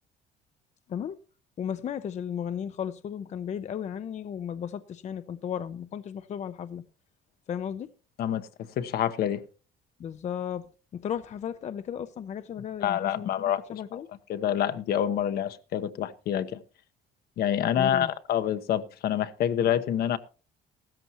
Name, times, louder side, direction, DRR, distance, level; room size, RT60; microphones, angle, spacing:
voice 1, 1.6-6.8 7.5-7.9 10.0-10.6 10.9-14.1 17.8-18.1, left 8 dB, 45° left, 0.6 m, -35 dB
voice 2, 8.8-9.4 12.8-13.6 14.3-16.6 17.4-20.2, left 10 dB, 65° left, 0.9 m, -27 dB
15.5 x 13.5 x 3.0 m
cardioid pair, 110°, 17 cm